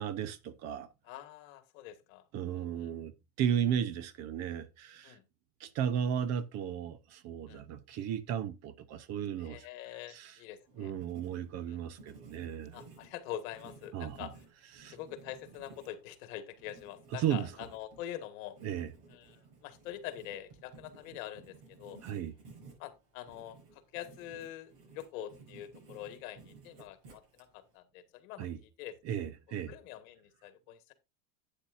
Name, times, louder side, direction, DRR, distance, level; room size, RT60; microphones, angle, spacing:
voice 1, 0.0-0.9 2.3-3.1 3.4-5.2 5.6-9.7 10.1-10.4 10.8-12.8 13.9-14.3 14.8-15.0 17.1-17.5 18.6-18.9 22.0-22.3 28.4-28.6 29.0-29.7, right 9 dB, 35° right, 0.8 m, -35 dB
voice 2, 1.0-2.9 5.0-5.2 7.5-7.6 9.4-10.9 11.7-11.8 12.7-14.3 14.9-18.6 19.1-22.0 22.8-28.5 28.8-29.0 29.5-30.9, left 12 dB, 60° left, 1.7 m, -45 dB
Writing, 10.6-27.8, right 4 dB, 60° right, 6.5 m, -56 dB
12.0 x 8.8 x 2.5 m
supercardioid pair, 155°, 45 cm